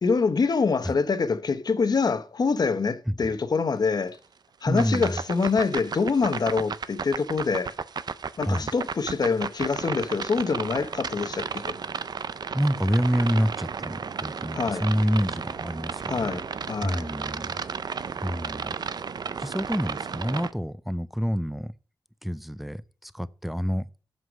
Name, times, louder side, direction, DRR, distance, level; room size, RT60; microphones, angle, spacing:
voice 1, 0.0-4.2 4.6-7.7 8.4-11.7 14.5-14.8 16.1-17.1, left 4 dB, 55° left, 0.9 m, -25 dB
voice 2, 4.7-5.2 8.4-8.7 12.3-16.4 16.8-17.5 18.2-18.8 19.4-21.7 22.2-23.9, equal, ahead, 0.4 m, -27 dB
sound 1, 4.8-20.5, right 6 dB, 55° right, 0.5 m, -34 dB
8.0 x 5.7 x 6.2 m
wide cardioid pair, 150°, 8 cm